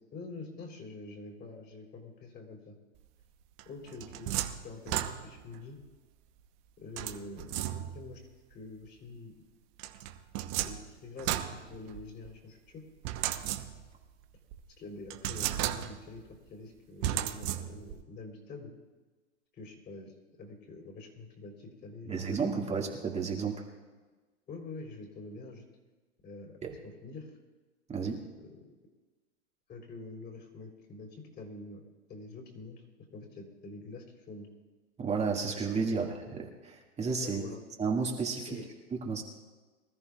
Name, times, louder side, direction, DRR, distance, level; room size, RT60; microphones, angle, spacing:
voice 1, 0.1-2.8 3.7-5.8 6.8-8.2 8.5-9.3 10.6-12.8 14.8-16.2 16.5-18.7 19.5-20.1 20.4-22.4 24.5-25.6 26.2-26.5 26.8-27.4 28.4-28.7 29.7-31.8 32.1-32.8 33.1-34.5 35.9-36.0 37.2-37.6 38.5-38.7, left 3 dB, 25° left, 2 dB, 3.6 m, -46 dB
sound 1, 3.6-5.6 7.0-8.2 9.8-12.3 13.0-14.0 14.5-14.6 15.1-16.2 17.0-18.0, right 13 dB, 40° right, 1.0 m, -35 dB
voice 2, 22.1-23.6 26.6-26.7 27.9-28.3 35.0-36.1 36.3-37.4 37.8-38.6 39.0-39.2, right 5 dB, 20° right, -1 dB, 2.1 m, -32 dB
24.5 x 13.5 x 2.4 m, 1.3 s
hypercardioid pair, 110°, 36 cm